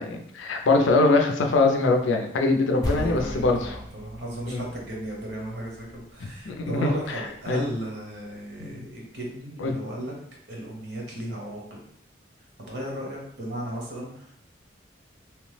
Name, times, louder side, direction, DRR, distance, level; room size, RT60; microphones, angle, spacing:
voice 1, 0.0-3.8 4.5-4.6 6.5-7.6 8.6-8.9 9.6-9.7, left 3 dB, 85° left, 3 dB, 0.4 m, -23 dB
sound 1, 2.8-7.4, equal, 20° left, 0.5 m, -36 dB
voice 2, 2.9-10.1 10.5-11.8 12.6-14.3, equal, 65° right, -2 dB, 0.9 m, -35 dB
2.9 x 2.0 x 3.2 m, 0.69 s
head